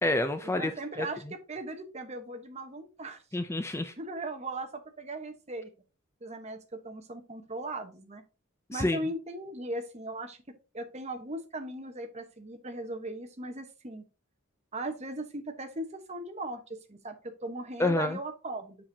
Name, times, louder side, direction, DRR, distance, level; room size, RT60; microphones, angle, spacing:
voice 1, 0.0-0.7 1.0-1.1 3.3-3.9 8.7-9.0 17.8-18.2, left 2 dB, 10° left, 0.4 m, -28 dB
voice 2, 0.5-3.2 4.0-5.7 6.2-8.2 8.7-10.4 10.7-14.0 14.7-18.8, right 2 dB, 30° right, 1.1 m, -38 dB
7.3 x 6.9 x 2.8 m
head